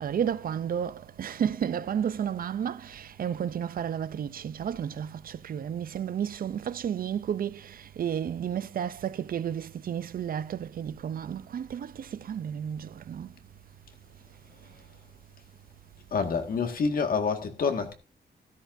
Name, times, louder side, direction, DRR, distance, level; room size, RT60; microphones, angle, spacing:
voice 1, 0.0-13.3, right 8 dB, 55° right, 0.5 m, -32 dB
voice 2, 16.1-17.9, left 5 dB, 55° left, 1.8 m, -27 dB
13.5 x 13.0 x 2.6 m
wide cardioid pair, 155°, 17 cm